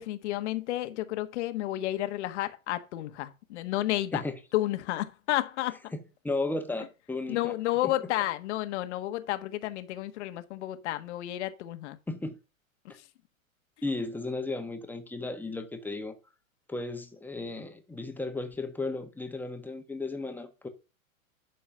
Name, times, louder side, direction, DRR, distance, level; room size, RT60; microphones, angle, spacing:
voice 1, 0.0-4.2 4.5-5.9 7.3-12.0, left 15 dB, 55° left, 1.4 m, -31 dB
voice 2, 5.9-7.5 7.8-7.9 12.1-12.4 13.8-16.2 16.7-20.7, left 2 dB, 5° left, 1.3 m, -35 dB
11.5 x 4.5 x 5.6 m
hypercardioid pair, 120°, 42 cm